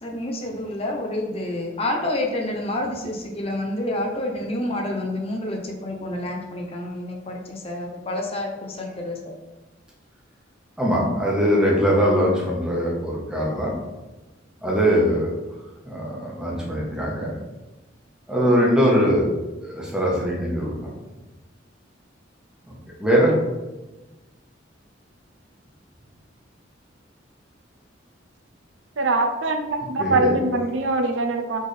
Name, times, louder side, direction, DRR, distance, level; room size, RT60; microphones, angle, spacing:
voice 1, 0.0-9.3, left 1 dB, 30° left, 1 dB, 0.6 m, -28 dB
voice 2, 10.8-13.8 14.6-15.3 15.8-17.3 18.3-19.3 19.6-20.8 22.7-22.8 23.0-23.3 30.0-30.3, equal, 5° right, -4 dB, 1.1 m, -21 dB
voice 3, 29.0-31.6, right 2 dB, 75° right, 6 dB, 0.5 m, -23 dB
4.2 x 3.5 x 3.3 m, 1.1 s
head